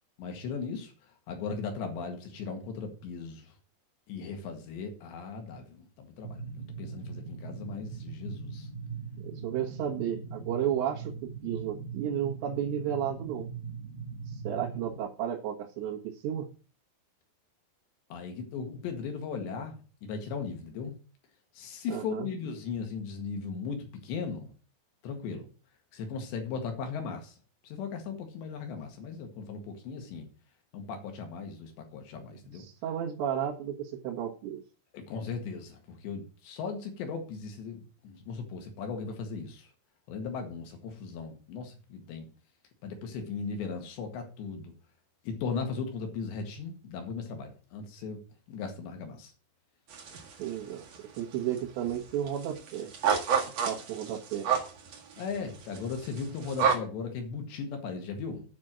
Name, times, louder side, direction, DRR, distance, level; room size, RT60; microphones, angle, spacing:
voice 1, 0.2-0.9 1.3-3.6 4.1-8.7 18.1-21.0 21.6-24.5 25.0-25.5 25.9-27.4 27.6-30.3 30.7-32.7 34.9-39.7 40.1-42.3 42.8-44.7 45.2-48.2 48.5-49.3 55.2-58.4, left 5 dB, 75° left, 4 dB, 4.0 m, -37 dB
sound 1, 6.2-15.0, right 5 dB, 35° left, 2.5 m, -40 dB
voice 2, 9.2-13.5 14.3-16.5 21.9-22.3 32.5-34.6 50.4-52.9 53.7-54.5, right 10 dB, 75° right, -3 dB, 3.7 m, -33 dB
sound 2, 49.9-50.5 50.8-51.6 51.9-52.0 52.3-56.7, right 7 dB, 50° right, 2.1 m, -29 dB
9.3 x 5.4 x 7.6 m, 0.37 s
omnidirectional pair, 5.2 m